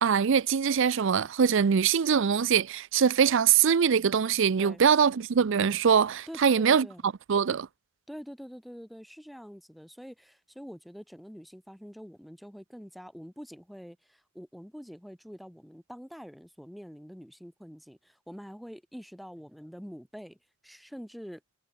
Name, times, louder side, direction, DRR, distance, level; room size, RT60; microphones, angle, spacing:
voice 1, 0.0-6.9 7.3-7.7, right 7 dB, 60° right, 0.5 m, -23 dB
voice 2, 6.3-7.0 8.1-20.4 20.6-21.4, equal, ahead, 3.6 m, -45 dB
head